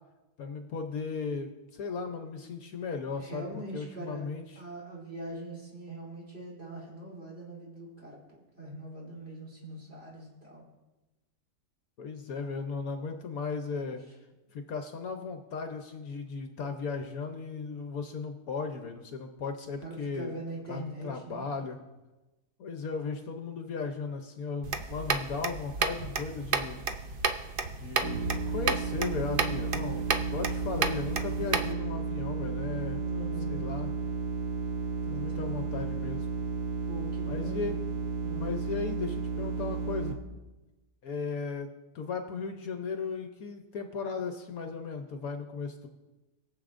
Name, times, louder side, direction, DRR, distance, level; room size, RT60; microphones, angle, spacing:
voice 1, 0.4-4.6 12.0-14.0 14.5-20.4 20.7-21.8 22.6-26.8 27.8-33.0 33.5-33.9 35.0-36.3 37.3-37.8 38.4-40.2 41.0-45.9, left 5 dB, 65° left, 5 dB, 1.2 m, -36 dB
voice 2, 3.2-4.3 4.6-10.6 19.8-21.5 33.0-33.7 35.3-35.8 36.9-37.7 38.2-38.5, right 1 dB, 35° right, -5 dB, 3.8 m, -42 dB
sound 1, 24.6-31.7, right 5 dB, 60° right, 0.5 m, -32 dB
sound 2, 28.0-40.1, right 5 dB, 85° right, 1.6 m, -33 dB
21.5 x 7.8 x 2.5 m, 1.1 s
omnidirectional pair, 1.7 m